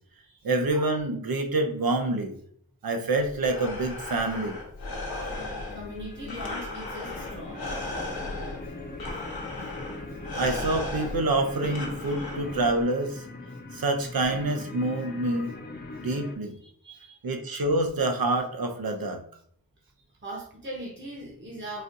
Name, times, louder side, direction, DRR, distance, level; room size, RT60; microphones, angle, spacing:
voice 1, 0.4-2.4 2.8-4.6 5.1-5.3 10.4-13.3 13.7-15.5 16.0-16.6 17.2-19.2, right 2 dB, 75° right, 5 dB, 0.6 m, -27 dB
Breathing, 3.2-12.8, left 2 dB, 80° left, 0.9 m, -36 dB
sound 1, 5.3-16.4, left 2 dB, 25° left, 0.5 m, -41 dB
voice 2, 5.7-8.0 12.1-12.2 16.0-16.1 16.6-17.2 20.2-21.8, right 1 dB, 30° right, -4 dB, 0.9 m, -40 dB
4.2 x 2.4 x 2.6 m, 0.63 s
wide cardioid pair, 50°, 36 cm